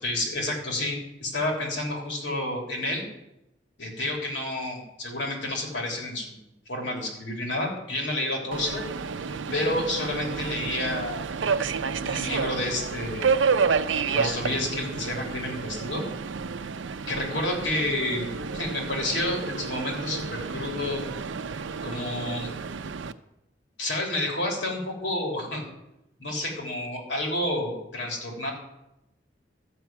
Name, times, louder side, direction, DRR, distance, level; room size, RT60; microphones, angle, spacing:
voice 1, 0.0-3.1 3.8-6.4 6.7-8.8 9.5-11.2 12.0-13.3 14.1-16.0 17.1-21.0 21.8-22.5 23.8-25.6 26.2-28.5, left 1 dB, 70° left, 0 dB, 3.4 m, -30 dB
Subway metro underground, 8.5-23.1, right 5 dB, 85° right, 0.5 m, -30 dB
12.5 x 5.9 x 8.9 m, 0.89 s
head